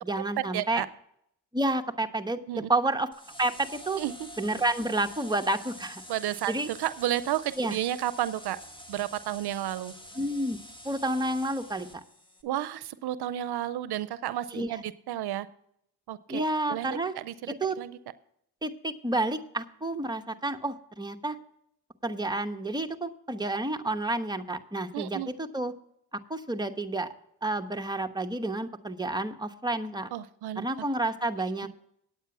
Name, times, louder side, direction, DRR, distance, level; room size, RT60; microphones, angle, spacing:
voice 1, 0.0-0.8 1.5-3.1 3.4-4.0 4.4-6.0 6.5-6.7 7.6-7.7 10.2-10.6 10.8-12.0 14.5-14.8 16.3-17.1 17.5-17.8 18.6-21.4 22.0-25.7 26.3-27.1 27.4-30.1 30.6-31.7, right 2 dB, 10° right, 6 dB, 1.1 m, -30 dB
voice 2, 0.5-0.9 2.5-2.7 4.0-4.3 6.1-8.6 8.9-9.9 12.4-15.5 16.1-16.4 16.7-18.0 24.9-25.3 30.1-30.7, right 12 dB, 85° right, 15 dB, 0.6 m, -32 dB
sound 1, 3.1-12.4, left 1 dB, 10° left, 1.8 m, -47 dB
9.2 x 8.7 x 6.0 m, 0.73 s
cardioid pair, 55°, 38 cm